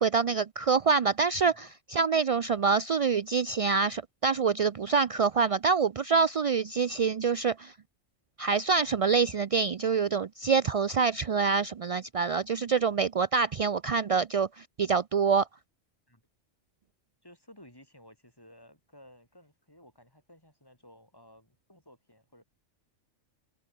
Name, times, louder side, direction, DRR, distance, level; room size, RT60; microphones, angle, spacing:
voice 1, 0.0-7.7 8.4-15.5, right 5 dB, 55° right, 0.4 m, -26 dB
voice 2, 1.3-1.7 16.1-16.2 17.2-22.4, left 1 dB, 20° left, 5.6 m, -56 dB
omnidirectional pair, 1.3 m